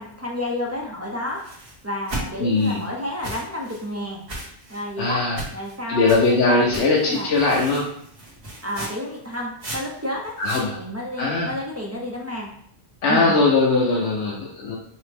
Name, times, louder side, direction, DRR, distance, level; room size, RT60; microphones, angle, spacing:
voice 1, 0.0-1.4 1.8-4.2 4.7-5.2 5.5-7.4 8.6-10.3 10.7-12.5 13.1-13.4, left 1 dB, 20° right, -2 dB, 0.4 m, -30 dB
sound 1, 1.3-2.8 3.2-3.8 4.3-4.9 5.4-5.8 6.1-6.4 6.7-10.7, right 1 dB, 75° right, 1.6 m, -36 dB
voice 2, 2.4-2.8 5.0-5.4 5.9-7.9 10.4-10.8 11.2-11.5 13.0-14.8, left 3 dB, 80° left, -3 dB, 0.9 m, -20 dB
5.5 x 2.1 x 3.3 m, 0.66 s
omnidirectional pair, 1.1 m